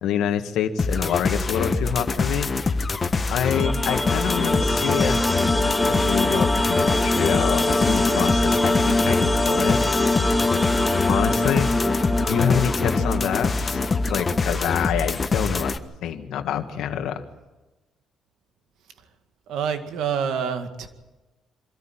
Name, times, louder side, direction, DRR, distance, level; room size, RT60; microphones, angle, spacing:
voice 1, 0.0-2.8 3.3-5.2 5.6-9.9 11.1-11.7 12.2-13.8 14.1-15.7 16.0-17.2, left 8 dB, 85° left, 7 dB, 1.7 m, -26 dB
sound 1, 0.8-15.8, left 4 dB, 35° left, 1.4 m, -25 dB
sound 2, 3.5-14.6, left 2 dB, 10° left, 2.5 m, -23 dB
voice 2, 19.5-20.9, right 7 dB, 85° right, 7 dB, 2.1 m, -27 dB
25.0 x 14.0 x 9.1 m, 1.2 s
cardioid pair, 90°, 0 cm